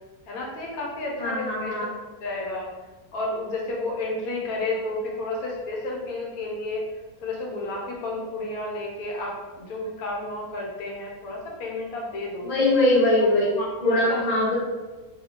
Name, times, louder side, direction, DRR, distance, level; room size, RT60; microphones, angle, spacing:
voice 1, 0.3-1.8 2.2-2.7 3.1-6.8 7.2-12.6 13.2-13.3 13.6-14.2, left 2 dB, 80° left, -1 dB, 1.3 m, -31 dB
voice 2, 1.2-1.9 12.4-14.5, left 1 dB, 35° left, -6 dB, 0.8 m, -22 dB
3.1 x 2.7 x 3.2 m, 1.2 s
omnidirectional pair, 1.5 m